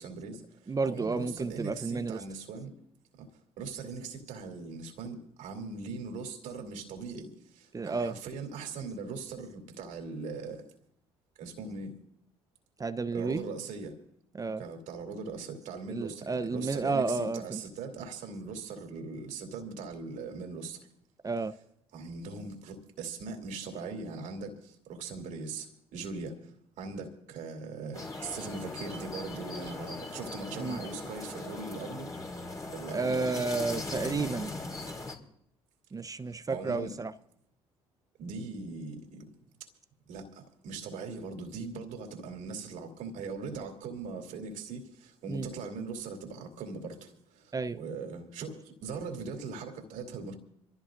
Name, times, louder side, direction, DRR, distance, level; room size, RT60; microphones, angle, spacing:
voice 1, 0.0-2.7 3.2-3.3 3.6-10.7 11.4-12.0 13.1-13.9 14.6-20.9 21.9-32.1 32.7-33.4 35.9-36.0 36.5-37.0 38.2-39.3 40.1-50.3, right 4 dB, 65° right, 3.1 m, -40 dB
voice 2, 0.7-2.2 7.7-8.2 12.8-13.4 14.3-14.6 15.9-17.6 21.2-21.5 30.6-30.8 32.9-34.5 35.9-37.1 45.3-45.5 47.5-47.8, right 4 dB, 25° right, 0.7 m, -31 dB
sound 1, 27.9-35.2, left 2 dB, 25° left, 3.8 m, -39 dB
26.0 x 16.0 x 2.6 m
hypercardioid pair, 55°, 14 cm